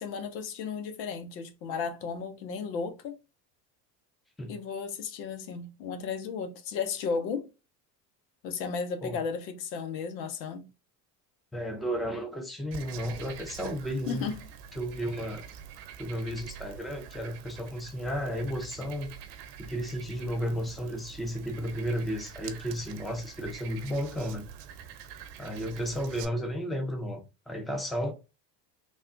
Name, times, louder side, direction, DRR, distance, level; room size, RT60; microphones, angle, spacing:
voice 1, 0.0-3.2 4.5-7.5 8.4-10.7 14.1-14.5, left 5 dB, 80° left, 0.8 m, -34 dB
voice 2, 11.5-14.3 14.8-15.5 16.0-19.1 19.6-24.5 25.4-28.1, equal, ahead, 0.6 m, -33 dB
Frog, 12.7-26.3, right 8 dB, 55° right, 0.7 m, -46 dB
3.4 x 2.3 x 2.6 m
hypercardioid pair, 90°, 50 cm